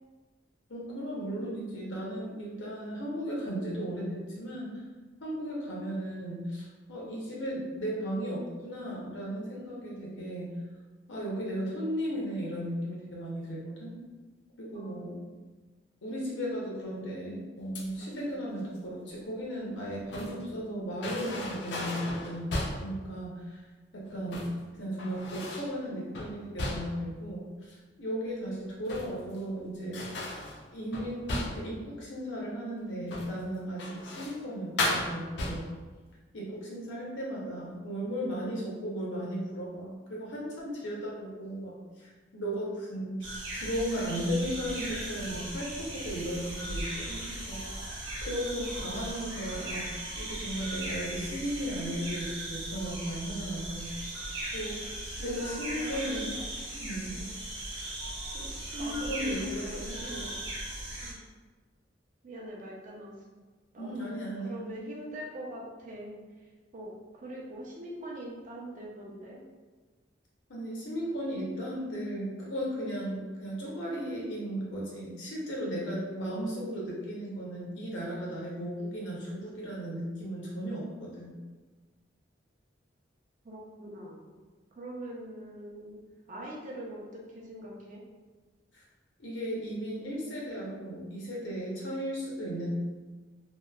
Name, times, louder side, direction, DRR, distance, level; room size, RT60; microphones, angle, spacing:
voice 1, 0.7-4.8 5.2-10.5 11.1-14.0 14.6-15.2 16.0-22.5 22.8-23.6 23.9-24.4 24.8-30.0 30.7-35.7 36.3-47.9 48.2-53.9 54.5-54.8 55.2-56.3 56.7-57.2 58.7-60.3 63.8-64.7 70.5-81.3 89.2-92.7, equal, 85° left, -5 dB, 0.8 m, -36 dB
voice 2, 14.7-15.4 55.2-56.4 57.1-57.3 58.3-58.5 58.8-60.4 61.0-61.3 62.2-63.1 63.7-64.1 64.4-69.4 83.4-84.4 84.7-86.0 86.3-88.0, right 1 dB, 45° right, -3 dB, 0.5 m, -43 dB
sound 1, 17.7-18.2 19.7-20.5 21.0-23.0 24.1-24.6 25.0-25.8 26.1-27.1 28.6-29.4 29.9-31.8 33.0-33.4 33.8-34.4 34.8-35.9, left 1 dB, 65° left, 0.4 m, -35 dB
sound 2, 43.2-61.1, right 1 dB, 85° right, 0.7 m, -38 dB
2.8 x 2.1 x 2.3 m, 1.3 s
head